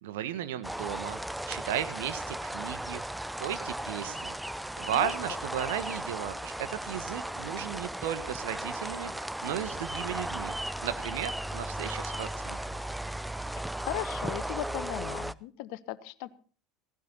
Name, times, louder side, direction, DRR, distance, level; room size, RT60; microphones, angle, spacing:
voice 1, 0.0-1.2 1.5-3.0 3.4-4.4 4.8-10.5 10.8-12.8, right 11 dB, 75° right, 12 dB, 1.4 m, -35 dB
sound 1, 0.6-15.3, right 1 dB, 5° right, 0.6 m, -36 dB
voice 2, 13.8-16.3, left 16 dB, 65° left, 16 dB, 1.1 m, -37 dB
17.0 x 16.5 x 4.1 m, 0.40 s
hypercardioid pair, 75°, 0 cm